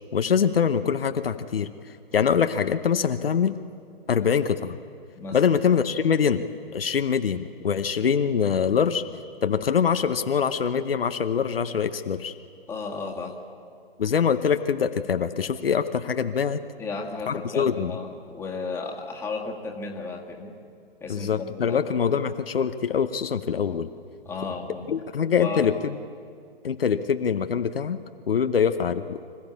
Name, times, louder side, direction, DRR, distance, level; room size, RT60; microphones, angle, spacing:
voice 1, 0.1-1.7 2.1-3.6 4.1-4.8 5.3-6.4 6.7-9.0 9.4-12.3 14.0-16.6 17.3-17.9 21.1-23.9 24.9-25.9 26.6-28.0 28.3-29.2, left 7 dB, 70° left, 9 dB, 0.9 m, -24 dB
voice 2, 12.7-13.4 16.8-20.5 21.0-21.8 24.2-24.9 25.4-25.7, left 4 dB, 10° left, 0 dB, 1.7 m, -34 dB
25.5 x 14.5 x 8.5 m, 2.4 s
figure-of-eight pair, 130°, 30 cm